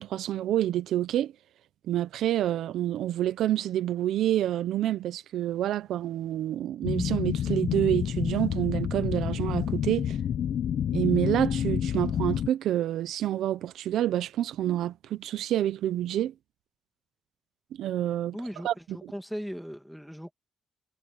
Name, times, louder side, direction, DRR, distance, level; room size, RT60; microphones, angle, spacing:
voice 1, 0.0-1.3 1.9-10.2 10.9-16.3 17.8-18.4 18.6-19.1, right 12 dB, 80° right, 0.8 m, -28 dB
sound 1, 6.8-12.5, left 9 dB, 65° left, 1.1 m, -29 dB
voice 2, 18.3-20.3, equal, ahead, 2.5 m, -38 dB
cardioid pair, 90°, 0 cm